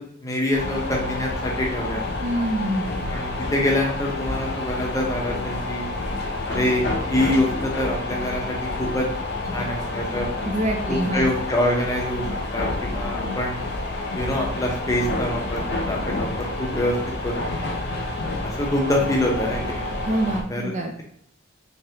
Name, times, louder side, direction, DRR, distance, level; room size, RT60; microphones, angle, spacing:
voice 1, 0.0-2.0 3.1-5.9 6.4-9.1 9.5-10.3 10.9-12.3 12.5-13.7 14.1-16.9 17.2-17.7 18.4-19.8 20.5-20.7, left 1 dB, 15° left, -1 dB, 0.7 m, -25 dB
sound 1, 0.5-20.4, left 2 dB, 55° left, 0.6 m, -29 dB
voice 2, 2.2-3.2 10.4-11.3 13.2-13.4 20.1-21.0, right 1 dB, 35° right, 3 dB, 0.5 m, -26 dB
3.5 x 3.5 x 2.8 m, 0.69 s
head